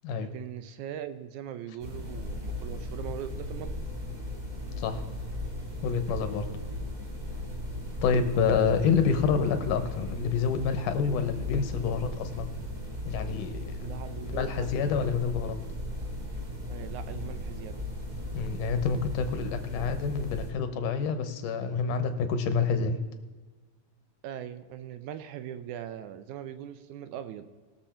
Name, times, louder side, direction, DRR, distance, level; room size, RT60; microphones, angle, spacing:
voice 1, 0.2-3.7 13.8-14.7 16.7-17.8 24.2-27.5, right 10 dB, 75° right, 10 dB, 2.0 m, -40 dB
sound 1, 1.8-20.5, left 1 dB, 25° right, 2.8 m, -37 dB
voice 2, 5.8-6.5 8.0-12.5 13.1-13.8 14.2-15.6 18.3-23.0, left 5 dB, 85° left, 9 dB, 2.5 m, -28 dB
21.0 x 7.1 x 4.4 m, 1.3 s
omnidirectional pair, 3.7 m